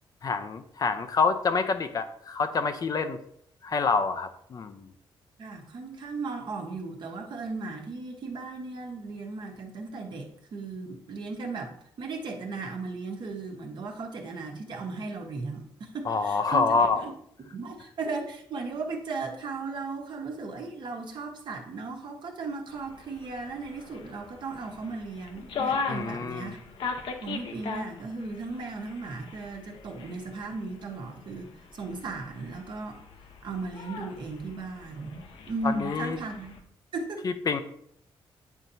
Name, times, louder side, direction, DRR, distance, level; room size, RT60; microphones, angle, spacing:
voice 1, 0.2-3.2 3.6-4.9 16.1-17.0 25.9-26.5 35.6-36.2 37.2-37.6, left 4 dB, 40° left, 9 dB, 0.6 m, -27 dB
voice 2, 5.4-17.1 17.4-26.6 27.2-33.0 33.4-36.6 36.9-37.3, right 3 dB, 55° right, 1 dB, 1.2 m, -36 dB
sound 1, 22.7-36.6, left 4 dB, 70° left, 0.8 m, -39 dB
9.3 x 4.3 x 2.7 m, 0.68 s
cardioid pair, 120°, 9 cm